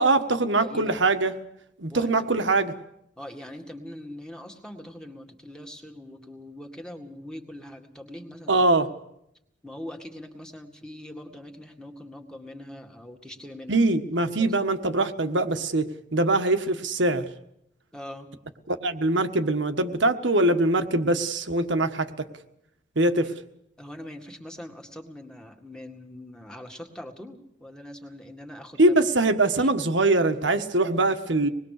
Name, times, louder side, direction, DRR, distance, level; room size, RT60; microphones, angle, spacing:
voice 1, 0.0-1.3 1.8-2.7 8.5-8.9 13.7-17.2 18.7-22.3 22.9-23.3 28.8-31.5, right 2 dB, 75° right, 8 dB, 1.5 m, -23 dB
voice 2, 0.6-1.0 1.9-2.2 3.2-8.6 9.6-13.9 14.1-14.6 17.9-18.3 23.0-23.3 23.8-29.0 29.3-30.0, left 1 dB, 5° left, 3 dB, 2.0 m, -42 dB
26.0 x 20.5 x 6.7 m, 0.79 s
head